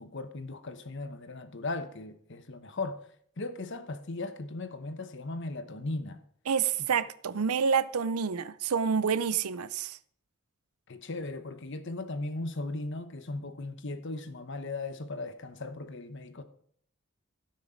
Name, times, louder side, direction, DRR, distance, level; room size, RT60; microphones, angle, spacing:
voice 1, 0.0-3.0 3.4-6.2 10.9-16.4, left 2 dB, 55° left, 1.0 m, -37 dB
voice 2, 6.5-10.0, right 6 dB, 80° right, 0.5 m, -28 dB
16.0 x 6.4 x 5.1 m
head